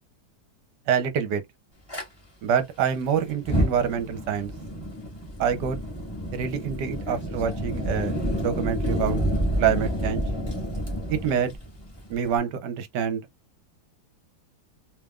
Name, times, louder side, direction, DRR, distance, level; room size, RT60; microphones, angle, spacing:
voice 1, 0.9-1.4 2.4-4.5 5.4-5.8 6.3-9.2 9.6-10.2 11.1-11.5 12.1-13.2, right 8 dB, 65° right, 1.3 m, -26 dB
Fire, 1.9-2.0 3.3-12.4, equal, 15° left, 1.7 m, -29 dB
3.5 x 3.4 x 2.3 m
omnidirectional pair, 2.2 m